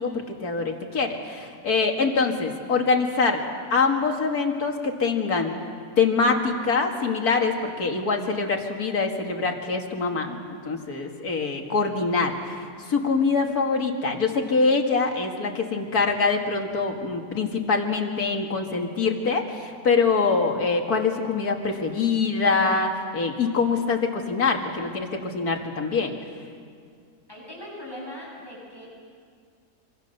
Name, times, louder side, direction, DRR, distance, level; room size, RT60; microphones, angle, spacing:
voice 1, 0.0-3.4 3.7-5.5 6.0-10.4 10.6-12.6 12.9-26.1, left 4 dB, 85° left, 3 dB, 2.6 m, -24 dB
voice 2, 27.3-28.9, left 1 dB, 15° left, -5 dB, 8.0 m, -39 dB
26.0 x 25.5 x 6.7 m, 2.1 s
omnidirectional pair, 1.6 m